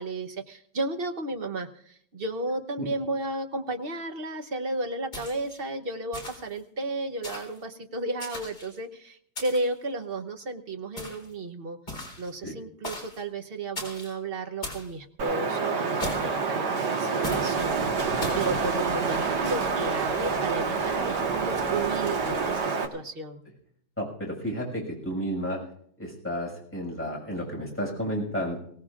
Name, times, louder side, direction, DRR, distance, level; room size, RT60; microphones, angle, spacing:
voice 1, 0.0-11.8 12.2-23.4, right 2 dB, 40° right, 6 dB, 0.9 m, -33 dB
sound 1, 5.1-5.6 6.1-6.6 7.2-7.6 8.2-8.8 9.4-9.8 11.0-11.3 11.9-12.3 12.8-13.2 13.8-14.1 14.6-14.9 16.0-16.5 17.2-17.5 18.2-18.5, left 1 dB, 35° left, 4.3 m, -37 dB
Wind, 15.2-22.9, right 5 dB, 65° right, 2.1 m, -27 dB
sound 2, 17.5-22.6, left 1 dB, 15° right, 6.6 m, -45 dB
voice 2, 24.0-25.6 26.0-28.6, equal, 5° left, -2 dB, 6.0 m, -32 dB
23.5 x 17.5 x 2.5 m, 0.64 s
omnidirectional pair, 2.0 m